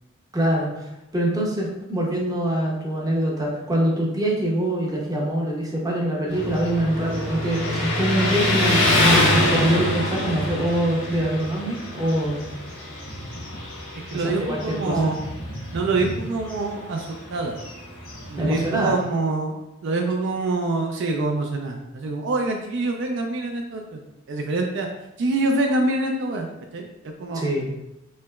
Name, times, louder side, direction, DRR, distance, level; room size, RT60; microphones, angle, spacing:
voice 1, 0.3-12.4 14.1-15.1 18.4-19.0 27.3-27.7, right 1 dB, 20° right, -3 dB, 0.6 m, -24 dB
Motorcycle, 6.3-18.9, left 1 dB, 85° left, 1.0 m, -25 dB
voice 2, 14.1-15.2 15.7-17.6 18.3-19.5 19.8-24.0 24.3-24.9 25.2-27.4, right 2 dB, 65° right, 2 dB, 0.3 m, -25 dB
3.2 x 2.8 x 2.2 m, 0.92 s
head